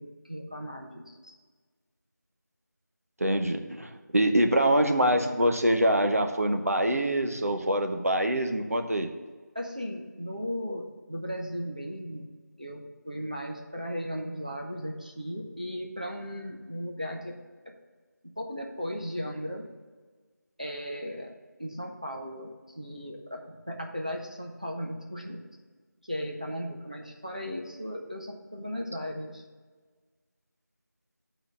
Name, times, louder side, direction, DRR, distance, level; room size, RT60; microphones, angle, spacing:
voice 1, 0.0-1.3 3.3-3.5 9.5-12.3 12.6-17.4 17.7-17.8 18.2-19.7 20.6-21.3 21.6-25.4 26.0-29.4, equal, 25° right, 1 dB, 0.5 m, -36 dB
voice 2, 3.2-9.1, right 1 dB, 50° right, 5 dB, 0.8 m, -25 dB
8.8 x 3.9 x 6.3 m, 1.4 s
figure-of-eight pair, 175°, 10 cm